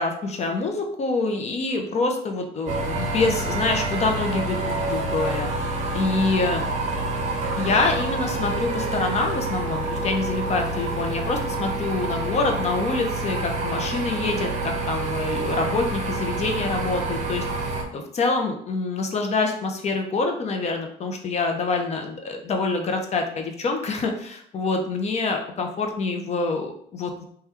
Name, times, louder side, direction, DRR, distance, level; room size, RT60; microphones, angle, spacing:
voice 1, 0.0-5.5 5.9-6.7 7.6-17.4 17.9-27.2, left 3 dB, 40° left, 3 dB, 0.5 m, -26 dB
sound 1, 2.7-17.8, right 2 dB, 45° right, 0.7 m, -27 dB
3.3 x 2.3 x 2.9 m, 0.64 s
cardioid pair, 110°, 17 cm